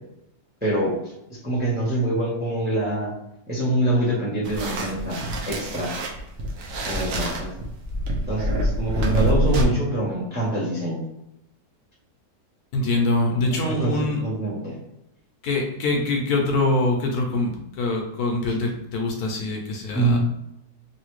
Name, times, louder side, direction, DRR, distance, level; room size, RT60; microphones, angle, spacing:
voice 1, 0.6-1.0 1.3-3.1 3.5-5.9 6.8-7.5 8.3-11.0 13.3-13.4 13.8-13.9 14.2-14.7 19.9-20.2, right 1 dB, 10° right, -5 dB, 0.8 m, -25 dB
sound 1, 4.4-9.6, right 1 dB, 60° right, 0.9 m, -26 dB
voice 2, 12.7-14.2 15.4-20.2, left 2 dB, 70° left, 1 dB, 1.1 m, -24 dB
3.2 x 2.7 x 3.1 m, 0.83 s
omnidirectional pair, 1.8 m